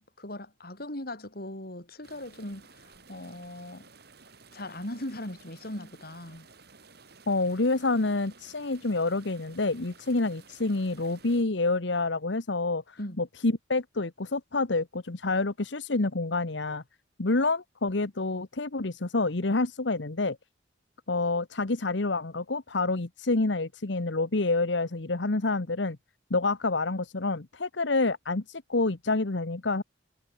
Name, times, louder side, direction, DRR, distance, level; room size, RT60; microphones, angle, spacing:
voice 1, 0.0-3.9 4.5-6.5 13.0-13.2, left 1 dB, 55° left, 5.8 m, -39 dB
sound 1, 2.0-11.4, right 4 dB, 55° right, 7.5 m, -55 dB
voice 2, 7.3-16.8 17.2-20.4 21.1-26.0 26.3-29.8, left 3 dB, 70° left, 1.2 m, -28 dB
head